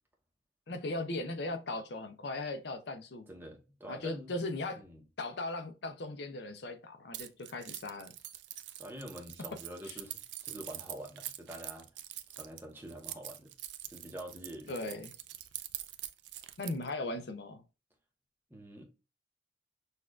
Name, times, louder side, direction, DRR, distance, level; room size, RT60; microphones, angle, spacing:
voice 1, 0.7-3.3 3.9-4.8 5.2-8.1 9.8-10.0 14.7-15.1 16.6-17.6, left 2 dB, 60° left, 0.5 m, -38 dB
voice 2, 3.3-4.3 4.8-5.0 8.8-11.9 12.3-13.5 13.9-15.0 18.5-18.8, right 1 dB, 10° right, 0.8 m, -46 dB
Keys jangling, 7.1-16.9, right 13 dB, 65° right, 0.4 m, -44 dB
6.4 x 2.4 x 2.3 m
head